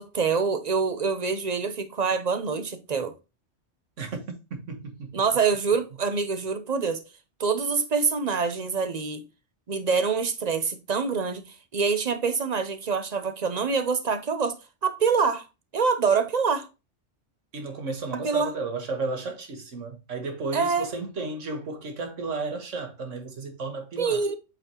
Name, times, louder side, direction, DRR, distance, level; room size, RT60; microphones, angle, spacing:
voice 1, 0.0-3.1 5.1-7.0 7.4-9.2 9.7-11.5 11.7-14.5 14.8-15.5 15.7-16.7 18.2-18.5 20.5-20.9 24.0-24.3, right 5 dB, 40° right, 0.8 m, -25 dB
voice 2, 4.5-5.1 17.5-24.2, right 3 dB, 90° right, 1.6 m, -33 dB
8.1 x 4.3 x 2.9 m
omnidirectional pair, 1.2 m